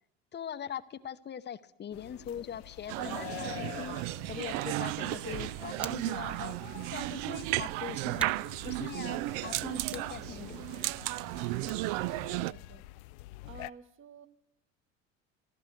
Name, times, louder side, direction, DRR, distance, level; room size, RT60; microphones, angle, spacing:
voice 1, 0.3-6.6 6.9-8.4 8.6-10.9, left 8 dB, 30° left, 14 dB, 0.7 m, -42 dB
sound 1, 1.9-13.7, left 19 dB, 65° left, 0.5 m, -48 dB
sound 2, 2.9-12.5, right 19 dB, 60° right, 0.4 m, -34 dB
Hands, 5.2-12.1, right 1 dB, 5° right, 0.8 m, -51 dB
voice 2, 12.4-12.9 13.4-14.3, right 6 dB, 35° right, 12 dB, 1.1 m, -51 dB
15.0 x 12.0 x 6.6 m, 0.83 s
hypercardioid pair, 75°, 37 cm